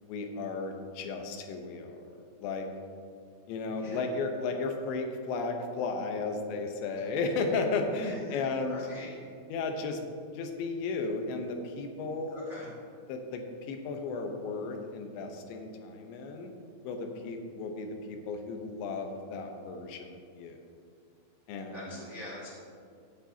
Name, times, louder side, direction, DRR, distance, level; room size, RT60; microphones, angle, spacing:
voice 1, 0.0-2.7 3.5-8.9 9.5-10.0 10.3-12.4 13.1-16.5 16.8-20.6 21.5-22.1, left 3 dB, 85° left, 4 dB, 3.3 m, -34 dB
voice 2, 8.0-9.1 12.3-12.7 21.7-22.5, left 1 dB, 80° right, -6 dB, 0.6 m, -44 dB
17.0 x 8.8 x 2.8 m, 2.3 s
omnidirectional pair, 5.1 m